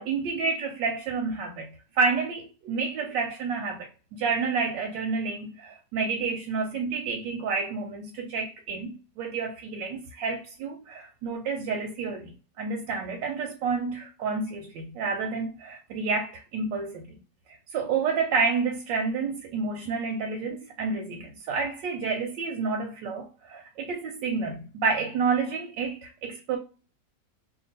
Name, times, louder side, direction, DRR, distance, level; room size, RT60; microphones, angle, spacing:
voice 1, 0.0-1.7 1.9-17.2 17.7-26.6, right 4 dB, 90° right, 1.3 m, -29 dB
2.9 x 2.5 x 3.9 m
omnidirectional pair, 1.9 m